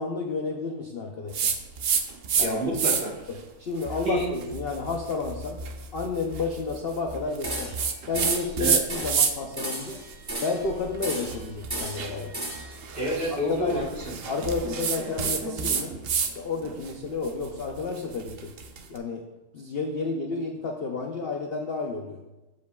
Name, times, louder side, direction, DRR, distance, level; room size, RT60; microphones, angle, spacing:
voice 1, 0.0-1.5 2.3-2.6 3.6-5.6 5.9-7.7 8.1-10.0 10.4-12.3 13.3-13.8 14.3-15.9 16.2-18.5 18.9-19.2 19.5-22.2, left 4 dB, 55° left, 2 dB, 0.7 m, -31 dB
sound 1, 1.3-2.5 2.7-3.2 3.8-9.5 9.9-16.3 16.6-18.8, right 6 dB, 70° right, 0.5 m, -29 dB
voice 2, 2.4-3.2 4.0-4.3 8.6-8.8 12.9-14.1, right 1 dB, 35° right, -2 dB, 1.4 m, -28 dB
sound 2, 7.4-7.9 8.1-8.5 8.9-9.2 9.6-10.7 11.0-11.4 11.7-12.8, right 1 dB, 15° right, 0.9 m, -34 dB
14.5 x 5.1 x 2.3 m, 1.0 s
omnidirectional pair, 1.8 m